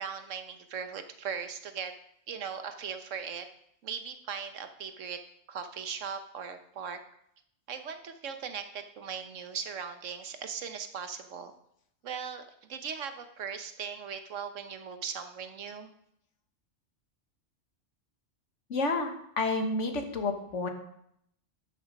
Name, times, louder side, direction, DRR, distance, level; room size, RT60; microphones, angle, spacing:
voice 1, 0.0-1.9 2.3-3.5 3.8-5.2 5.5-7.0 7.7-11.5 12.0-15.9, right 6 dB, 85° right, 8 dB, 1.3 m, -39 dB
voice 2, 18.7-20.7, left 3 dB, 75° left, 5 dB, 1.7 m, -30 dB
12.5 x 6.6 x 5.2 m, 0.74 s
omnidirectional pair, 1.3 m